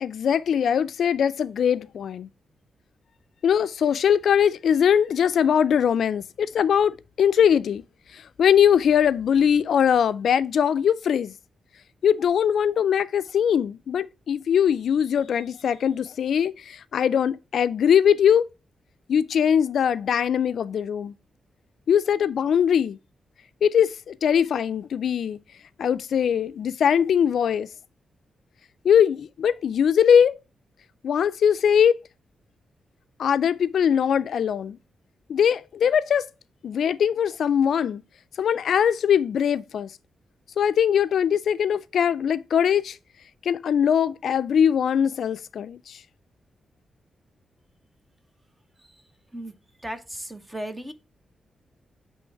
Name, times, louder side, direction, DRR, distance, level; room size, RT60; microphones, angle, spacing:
voice 1, 0.0-2.3 3.4-7.8 8.1-11.4 12.0-18.5 19.1-21.1 21.9-23.0 23.6-25.4 25.8-27.7 28.8-30.4 31.0-32.0 33.2-34.8 35.3-36.3 36.6-38.0 38.4-39.9 40.6-43.0 43.4-46.0, left 8 dB, 70° left, 0.3 m, -21 dB
voice 2, 49.8-50.9, right 1 dB, 10° right, 0.7 m, -35 dB
7.7 x 3.2 x 4.5 m
wide cardioid pair, 150°, 0 cm